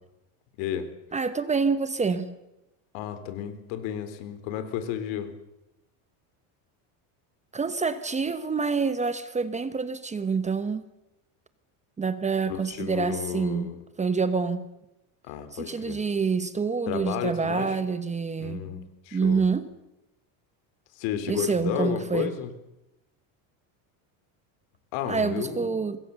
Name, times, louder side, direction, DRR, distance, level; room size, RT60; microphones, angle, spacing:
voice 1, 0.6-0.9 2.9-5.3 12.5-13.8 15.3-16.0 16.9-17.8 18.4-19.4 21.0-22.5 24.9-25.8, left 9 dB, 70° left, 3.6 m, -32 dB
voice 2, 1.1-2.4 7.5-10.8 12.0-13.7 14.0-14.7 15.5-18.8 19.1-19.7 21.3-22.4 25.1-26.0, right 5 dB, 15° right, 1.0 m, -27 dB
25.0 x 21.5 x 6.9 m
cardioid pair, 145°, 45 cm